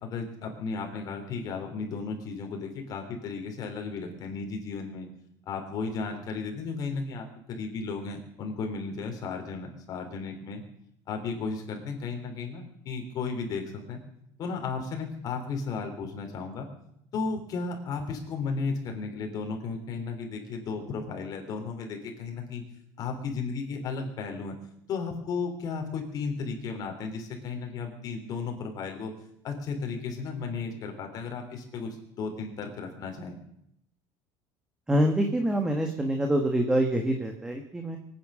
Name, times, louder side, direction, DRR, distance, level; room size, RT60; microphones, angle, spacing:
voice 1, 0.0-5.1 5.5-10.6 11.1-14.0 14.4-16.7 17.1-22.6 23.0-24.6 24.9-29.1 29.4-33.4, left 4 dB, 40° left, 4 dB, 3.6 m, -34 dB
voice 2, 34.9-38.0, right 1 dB, 5° right, 4 dB, 1.4 m, -25 dB
23.5 x 9.5 x 6.4 m, 0.74 s
cardioid pair, 155°, 9 cm